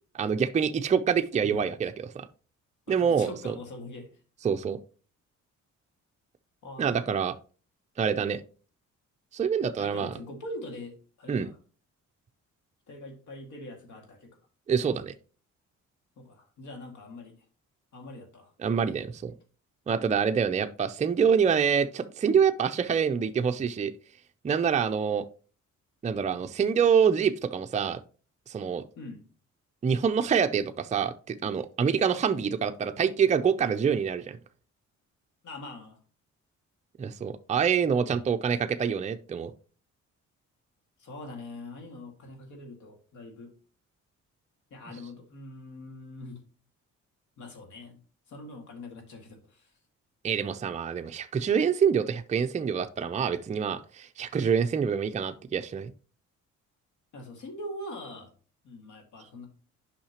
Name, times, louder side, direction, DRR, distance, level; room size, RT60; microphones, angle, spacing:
voice 1, 0.1-2.3 2.9-3.5 4.4-4.8 6.8-7.3 8.0-8.4 9.3-10.1 11.3-11.5 14.7-15.1 18.6-19.3 19.9-23.9 24.4-25.2 26.0-28.0 28.5-28.8 29.8-34.4 37.0-39.5 50.2-55.9, right 7 dB, 25° right, 7 dB, 0.5 m, -26 dB
voice 2, 2.9-4.1 6.6-7.2 9.8-11.6 12.9-14.3 16.2-17.3 17.9-18.5 29.0-29.3 35.4-36.0 41.0-43.5 44.7-46.4 47.4-48.0 48.3-49.7 57.1-58.3 58.6-59.5, left 1 dB, 75° left, 4 dB, 2.1 m, -43 dB
8.5 x 5.7 x 2.9 m, 0.38 s
cardioid pair, 90°, 30 cm